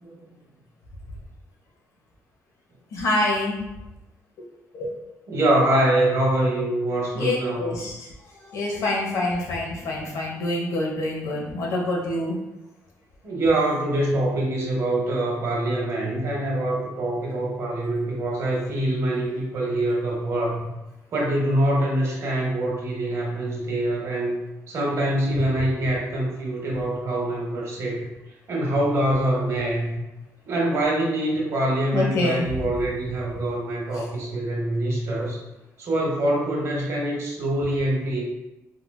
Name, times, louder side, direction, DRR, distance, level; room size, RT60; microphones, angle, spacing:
voice 1, 2.9-3.6 4.7-4.9 7.1-8.1 8.4-12.4 31.9-32.5, left 2 dB, 60° left, -2 dB, 0.7 m, -26 dB
voice 2, 5.3-7.7 13.2-20.7 21.1-24.4 24.7-28.0 28.5-29.9 30.5-35.4 35.8-38.2, right 1 dB, 50° right, -3 dB, 0.9 m, -24 dB
3.6 x 2.4 x 2.2 m, 0.97 s
cardioid pair, 160°, 6 cm